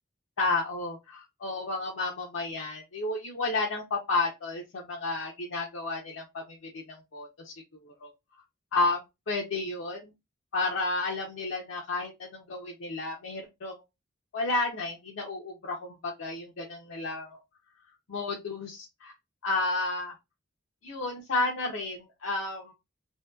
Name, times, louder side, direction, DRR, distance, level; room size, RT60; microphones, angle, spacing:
voice 1, 0.4-7.5 7.8-8.1 8.7-9.0 9.3-10.1 10.5-13.8 14.3-17.4 18.1-19.1 19.4-20.1 20.8-22.7, left 3 dB, 90° left, -1 dB, 0.6 m, -32 dB
2.7 x 2.1 x 2.2 m, 0.23 s
head